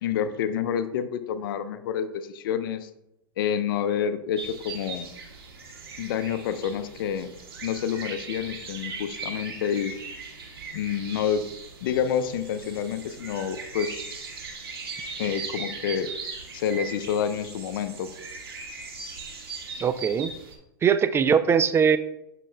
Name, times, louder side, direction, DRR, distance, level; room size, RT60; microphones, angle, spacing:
voice 1, 0.0-2.9 3.4-5.1 6.0-7.3 7.6-10.0 10.7-11.4 11.8-14.0 15.2-16.1 16.5-18.1, left 8 dB, 65° left, 11 dB, 0.6 m, -28 dB
sound 1, 4.4-20.6, right 4 dB, 90° right, 1.8 m, -39 dB
voice 2, 19.8-20.3 20.8-22.0, right 7 dB, 20° right, 12 dB, 0.4 m, -21 dB
8.4 x 6.6 x 2.2 m, 0.85 s
hypercardioid pair, 110°, 12 cm